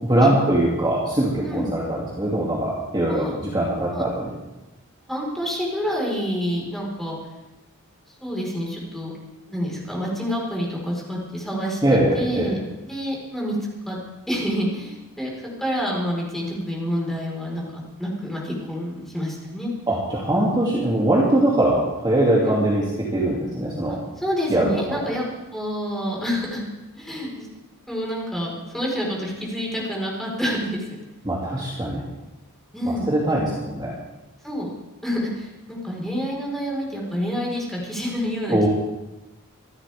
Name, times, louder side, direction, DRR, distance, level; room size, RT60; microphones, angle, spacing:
voice 1, 0.0-4.3 11.8-12.5 19.9-22.8 23.1-24.0 24.5-25.0 31.2-32.0 32.8-33.9 38.5-38.7, right 1 dB, 20° right, -5 dB, 2.7 m, -21 dB
voice 2, 5.1-7.2 8.2-9.1 9.5-13.6 13.9-14.0 14.3-19.7 22.4-22.6 23.9-26.6 26.9-27.5 27.9-30.8 32.7-33.4 34.4-34.7 35.0-38.7, equal, ahead, -3 dB, 4.7 m, -28 dB
26.0 x 12.5 x 3.6 m, 1.0 s
head